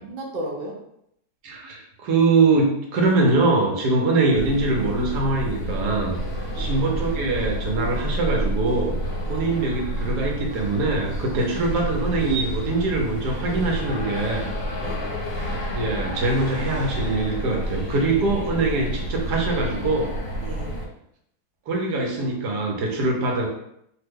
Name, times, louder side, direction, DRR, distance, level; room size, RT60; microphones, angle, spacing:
voice 1, 0.0-0.7 6.5-6.8 9.2-9.5 14.7-15.3 20.4-20.8, right 1 dB, 50° right, -2 dB, 0.6 m, -35 dB
voice 2, 1.4-6.2 6.6-8.9 9.3-14.5 15.5-20.1 21.7-23.5, right 3 dB, 85° right, 0 dB, 1.3 m, -23 dB
sound 1, 4.3-20.9, equal, 65° left, 1.2 m, -29 dB
3.1 x 2.1 x 3.4 m, 0.75 s
omnidirectional pair, 1.7 m